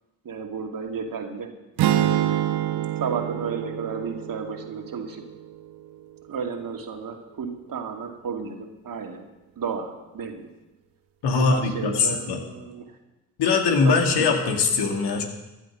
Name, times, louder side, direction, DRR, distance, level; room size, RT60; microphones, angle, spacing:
voice 1, 0.2-1.5 2.0-5.2 6.3-9.3 9.6-10.5 11.3-12.9 13.8-14.3, right 6 dB, 55° right, 3 dB, 2.5 m, -33 dB
sound 1, 1.8-5.9, right 12 dB, 70° right, 1.0 m, -27 dB
voice 2, 11.2-12.4 13.4-15.2, left 4 dB, 70° left, 2 dB, 2.6 m, -21 dB
14.5 x 12.0 x 6.4 m, 1.0 s
hypercardioid pair, 40°, 41 cm